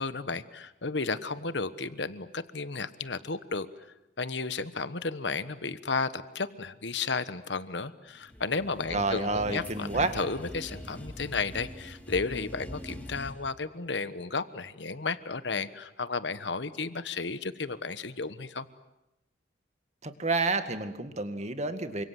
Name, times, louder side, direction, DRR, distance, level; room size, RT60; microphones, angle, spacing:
voice 1, 0.0-3.7 4.2-18.7, left 4 dB, 70° left, 13 dB, 1.3 m, -33 dB
sound 1, 8.2-13.3, left 1 dB, 10° left, 3.0 m, -43 dB
voice 2, 8.9-10.2 20.0-22.0, right 3 dB, 35° right, 8 dB, 2.0 m, -29 dB
28.5 x 25.5 x 7.8 m, 0.92 s
head